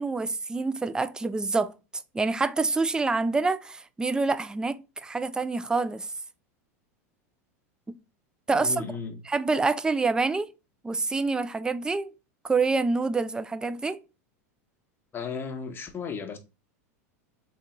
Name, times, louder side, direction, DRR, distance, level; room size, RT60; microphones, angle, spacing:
voice 1, 0.0-1.7 2.1-6.1 8.5-8.8 9.3-10.5 10.8-12.1 12.4-14.0, right 3 dB, 10° right, 0.3 m, -26 dB
voice 2, 8.5-9.2 15.1-16.4, left 5 dB, 25° left, 1.0 m, -35 dB
3.6 x 3.3 x 3.0 m
hypercardioid pair, 100°, 8 cm